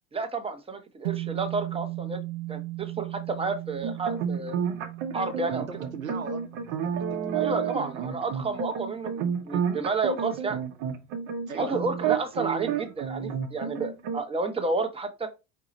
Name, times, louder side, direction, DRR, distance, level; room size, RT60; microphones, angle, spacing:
voice 1, 0.1-2.2 2.5-4.6 5.1-5.6 7.3-10.6 11.6-15.3, right 3 dB, 15° right, 0.8 m, -31 dB
sound 1, 1.0-9.5, right 19 dB, 70° right, 0.5 m, -38 dB
sound 2, 3.8-14.2, right 7 dB, 50° right, 0.9 m, -30 dB
voice 2, 5.6-7.4 11.5-11.9, right 6 dB, 85° right, 0.9 m, -39 dB
4.8 x 2.8 x 3.9 m
figure-of-eight pair, 75°, 40 cm